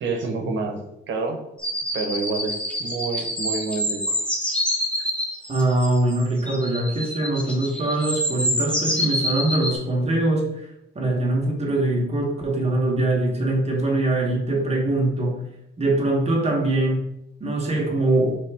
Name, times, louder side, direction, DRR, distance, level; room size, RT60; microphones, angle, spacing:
voice 1, 0.0-0.8 1.1-1.4 1.9-4.2, right 3 dB, 70° right, 3 dB, 0.9 m, -28 dB
sound 1, 1.6-9.7, equal, 5° left, 0.9 m, -27 dB
voice 2, 5.5-10.7 10.9-15.4 15.8-17.0 17.4-18.4, right 2 dB, 30° right, -1 dB, 1.2 m, -22 dB
4.2 x 3.4 x 3.4 m, 0.82 s
cardioid pair, 90°, 20 cm